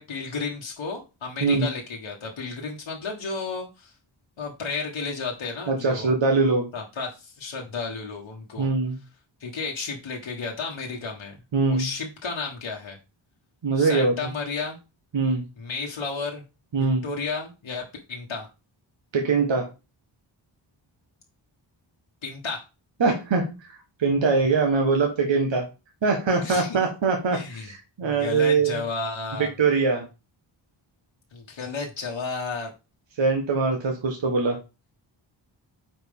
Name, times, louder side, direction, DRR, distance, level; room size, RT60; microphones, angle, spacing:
voice 1, 0.0-3.9 4.4-6.1 6.7-8.7 9.4-11.4 11.7-13.0 13.8-14.8 15.6-16.4 16.8-18.5 22.2-22.7 26.4-26.8 27.3-27.7 28.0-29.5 31.3-32.7, left 4 dB, 80° left, -1 dB, 1.5 m, -33 dB
voice 2, 5.7-6.7 8.6-9.0 11.5-11.9 13.6-14.1 15.1-15.4 16.7-17.0 19.1-19.7 23.0-23.5 24.0-25.7 26.0-28.8 29.4-30.0 33.2-34.6, right 4 dB, 65° right, 2 dB, 1.4 m, -22 dB
8.9 x 4.6 x 3.6 m, 0.28 s
wide cardioid pair, 160°, 48 cm